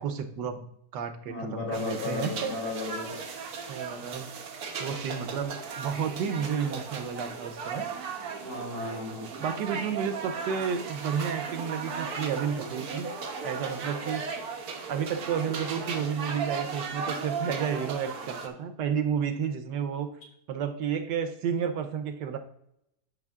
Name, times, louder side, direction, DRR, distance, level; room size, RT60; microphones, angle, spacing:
voice 1, 0.0-2.6 3.7-4.3 4.8-7.9 9.4-13.1 13.4-14.4 14.9-20.1 20.5-22.4, right 7 dB, 85° right, 7 dB, 1.3 m, -31 dB
voice 2, 1.3-3.2 8.4-9.3, left 3 dB, 75° left, -1 dB, 3.3 m, -34 dB
sound 1, 1.7-18.5, right 5 dB, 65° right, 1.4 m, -36 dB
12.0 x 6.2 x 2.4 m, 0.77 s
omnidirectional pair, 1.9 m